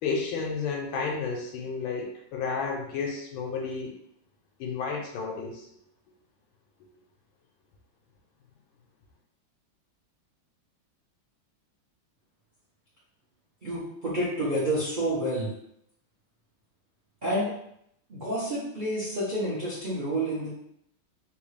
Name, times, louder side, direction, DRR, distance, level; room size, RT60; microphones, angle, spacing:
voice 1, 0.0-4.0 4.6-5.7, left 5 dB, 80° left, 0 dB, 1.4 m, -31 dB
voice 2, 13.6-15.5 17.2-17.5 18.1-20.5, right 1 dB, 55° right, -8 dB, 0.5 m, -29 dB
3.6 x 2.3 x 3.2 m, 0.72 s
omnidirectional pair, 2.2 m